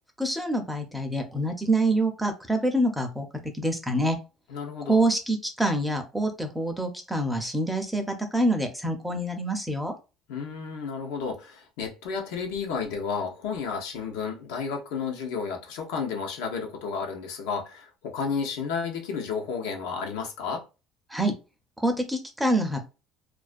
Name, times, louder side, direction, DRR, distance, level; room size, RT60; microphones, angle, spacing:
voice 1, 0.2-4.2 4.9-9.9 21.1-21.3 21.8-22.9, right 1 dB, ahead, 0.5 m, -26 dB
voice 2, 4.5-5.0 10.3-20.6, left 5 dB, 90° left, 0.7 m, -32 dB
2.3 x 2.1 x 2.4 m
cardioid pair, 135°, 0 cm